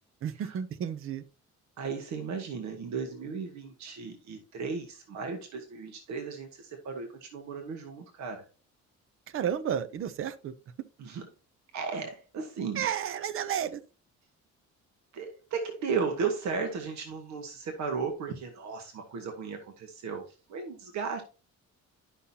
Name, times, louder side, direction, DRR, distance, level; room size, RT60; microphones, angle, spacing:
voice 1, 0.2-1.2 9.3-10.5 12.8-13.8, right 9 dB, 45° right, 0.6 m, -32 dB
voice 2, 1.8-8.5 11.0-11.3 11.7-12.9 15.1-21.2, right 5 dB, 65° right, 1.4 m, -35 dB
11.5 x 5.7 x 2.8 m
cardioid pair, 170°, 30 cm